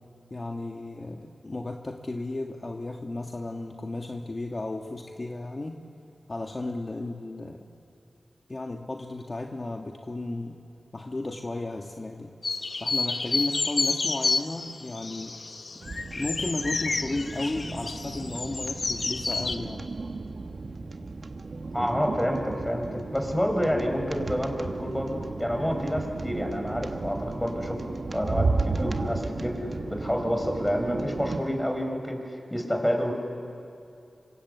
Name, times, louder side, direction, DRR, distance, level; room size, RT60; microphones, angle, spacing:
voice 1, 0.3-5.8 6.3-7.7 8.5-10.6 10.9-12.3 12.8-15.4 16.1-19.9, left 2 dB, 40° left, 2 dB, 1.9 m, -34 dB
sound 1, 12.4-19.6, left 3 dB, 65° left, 1.5 m, -30 dB
sound 2, 15.8-31.4, right 3 dB, 65° right, 1.7 m, -34 dB
voice 2, 21.7-27.8 28.1-32.2 32.5-33.1, equal, 10° left, 3 dB, 6.1 m, -28 dB
27.5 x 26.0 x 8.4 m, 2.6 s
cardioid pair, 50°, 0 cm